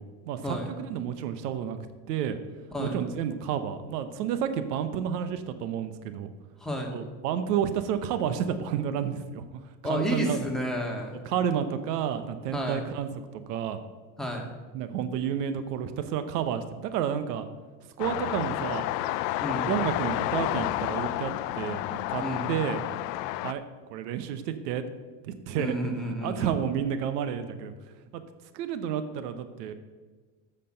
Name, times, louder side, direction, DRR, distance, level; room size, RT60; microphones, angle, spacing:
voice 1, 0.0-1.8 2.1-2.4 2.8-6.3 6.9-9.4 9.9-10.4 11.3-13.8 14.7-17.5 18.0-18.9 19.7-22.2 22.5-22.8 23.4-23.6 23.9-24.8 25.2-25.7 26.2-27.7 28.1-28.2 28.5-29.7, right 8 dB, 80° right, 11 dB, 0.9 m, -30 dB
voice 2, 2.7-3.0 6.6-6.9 9.8-11.2 12.5-12.9 14.2-14.5 19.4-19.7 22.2-22.5 25.6-26.6, equal, ahead, -1 dB, 2.2 m, -31 dB
sound 1, 18.0-23.5, left 15 dB, 80° left, 0.6 m, -30 dB
7.7 x 6.6 x 7.7 m, 1.4 s
supercardioid pair, 95°, 47 cm